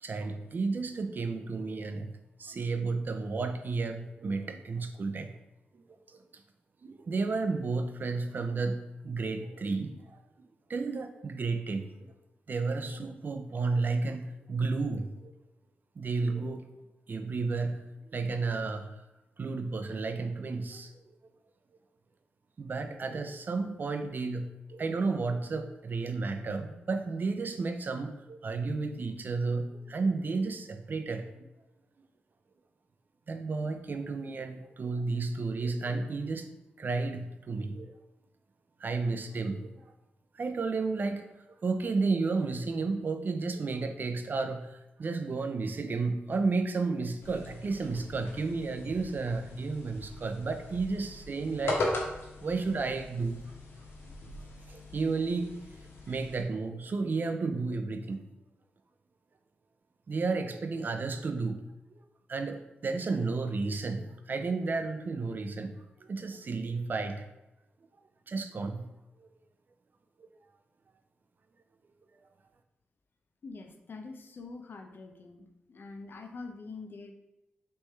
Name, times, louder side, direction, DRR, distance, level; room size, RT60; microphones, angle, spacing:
voice 1, 0.0-2.1 2.4-5.3 5.7-5.8 6.1-6.2 6.8-10.2 10.7-12.1 12.5-15.3 16.0-16.7 17.1-17.8 18.1-18.9 19.4-21.2 22.6-31.3 33.3-36.5 36.8-37.9 38.8-39.8 40.3-41.3 41.6-51.8 52.4-53.5 54.7-55.6 56.1-58.3 60.1-61.6 62.3-65.7 66.0-67.3 68.3-68.9 69.2-69.3 70.2-70.3, right 4 dB, 50° right, 8 dB, 0.5 m, -32 dB
sound 1, 47.2-56.4, left 2 dB, 85° left, 0.9 m, -39 dB
voice 2, 73.4-77.1, left 3 dB, 60° left, 4 dB, 0.6 m, -45 dB
3.4 x 3.2 x 4.2 m, 0.95 s
cardioid pair, 65°, 4 cm